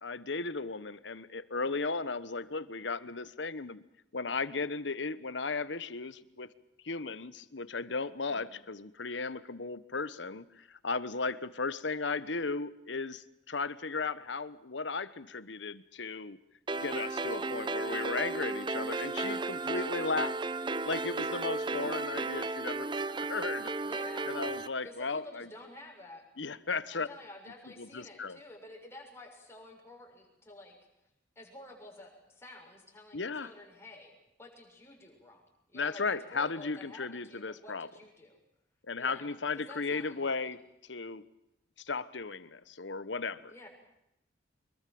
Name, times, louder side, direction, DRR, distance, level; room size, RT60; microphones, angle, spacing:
voice 1, 0.0-3.8 4.1-6.5 6.8-16.4 16.8-20.3 20.9-22.9 23.3-23.7 24.3-25.5 26.4-27.1 27.8-28.4 33.1-33.5 35.7-37.9 38.9-40.6 40.9-41.2 41.8-43.7, left 4 dB, 75° left, 15 dB, 1.2 m, -35 dB
sound 1, 16.7-24.7, right 3 dB, 25° right, 0.8 m, -34 dB
voice 2, 23.8-24.3 24.8-26.3 26.9-30.8 31.4-38.4 39.0-40.4 43.5-43.7, left 2 dB, 15° left, 0 dB, 7.0 m, -51 dB
25.0 x 22.5 x 7.8 m, 0.84 s
head